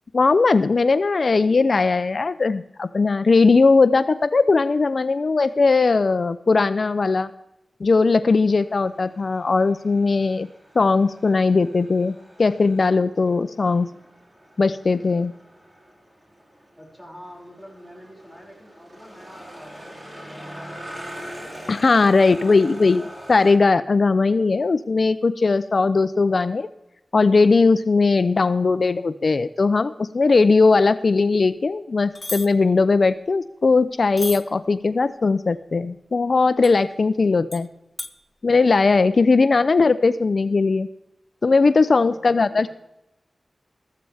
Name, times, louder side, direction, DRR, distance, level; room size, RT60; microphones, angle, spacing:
voice 1, 0.1-7.3 7.8-10.5 10.8-13.9 14.6-15.3 21.7-23.0 23.3-26.7 27.1-37.7 38.4-40.9 41.4-42.7, left 4 dB, 60° left, 13 dB, 0.4 m, -19 dB
sound 1, 8.5-23.5, equal, 30° right, 4.4 m, -43 dB
voice 2, 16.8-21.5 22.0-23.1 42.0-42.7, equal, 10° right, -2 dB, 5.5 m, -46 dB
sound 2, 32.2-32.5 34.2-34.4 36.6-36.7 37.5-37.6 38.0-38.1, left 2 dB, 30° left, 0.8 m, -31 dB
14.0 x 14.0 x 3.4 m, 0.90 s
wide cardioid pair, 60°, 0 cm